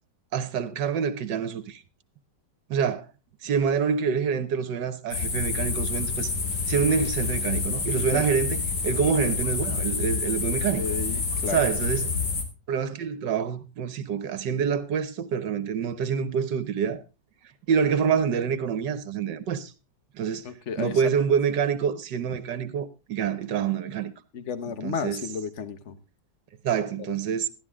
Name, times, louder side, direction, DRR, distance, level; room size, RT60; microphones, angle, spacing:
voice 1, 0.3-1.8 2.7-3.0 3.4-6.3 6.7-10.8 11.5-12.1 12.7-17.0 17.7-19.7 20.1-20.4 20.8-24.1 24.8-25.2 26.6-27.5, right 7 dB, 75° right, 1.7 m, -26 dB
sound 1, 5.1-12.4, left 4 dB, 65° left, 2.9 m, -28 dB
voice 2, 10.5-11.6 20.4-21.3 24.3-26.0, left 6 dB, 45° left, 1.3 m, -33 dB
13.5 x 11.5 x 3.6 m
omnidirectional pair, 2.0 m